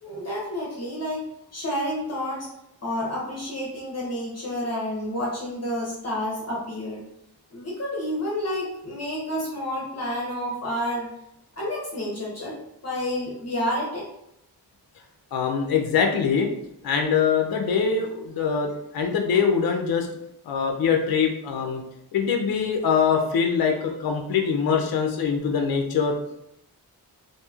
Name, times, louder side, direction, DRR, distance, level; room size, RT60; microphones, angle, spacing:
voice 1, 0.0-1.2 1.5-2.5 2.8-7.0 7.5-11.1 11.6-12.6 12.8-14.1, equal, 40° left, -5 dB, 0.8 m, -29 dB
voice 2, 15.3-16.5 16.8-18.7 18.9-20.1 20.5-21.8 22.1-26.2, left 6 dB, 65° left, 2 dB, 0.5 m, -23 dB
2.9 x 2.6 x 2.3 m, 0.79 s
wide cardioid pair, 125°, 39 cm